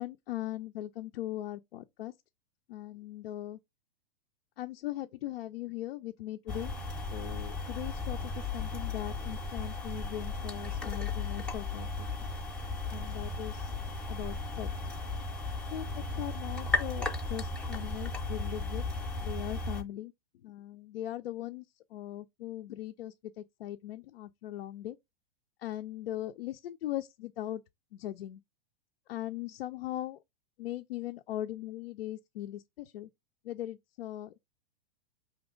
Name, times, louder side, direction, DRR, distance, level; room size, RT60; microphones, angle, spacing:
voice 1, 0.0-2.1 2.7-3.6 4.6-6.7 7.1-12.1 12.9-13.7 14.1-14.7 15.7-18.8 19.2-20.1 20.4-21.6 21.9-25.0 25.6-27.6 27.9-28.4 29.1-30.2 30.6-33.1 33.4-34.4, left 13 dB, 65° left, 0.5 m, -39 dB
sound 1, 6.5-19.8, left 3 dB, 5° left, 0.7 m, -35 dB
5.0 x 2.9 x 3.7 m
hypercardioid pair, 125°, 32 cm